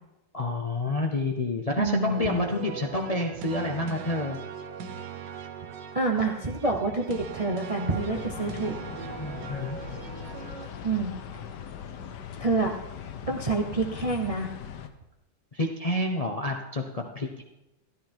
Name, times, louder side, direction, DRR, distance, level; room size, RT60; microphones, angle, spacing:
voice 1, 0.3-4.4 9.2-9.8 15.5-17.4, left 2 dB, 30° left, 3 dB, 0.7 m, -29 dB
voice 2, 1.8-2.4 5.9-8.7 10.8-11.1 12.4-12.7 13.2-14.5, right 3 dB, 30° right, 3 dB, 0.7 m, -27 dB
sound 1, 2.1-10.7, right 7 dB, 85° right, 1.5 m, -40 dB
sound 2, 8.0-14.9, left 8 dB, 80° left, 1.5 m, -40 dB
13.0 x 12.5 x 4.4 m, 0.95 s
omnidirectional pair, 1.8 m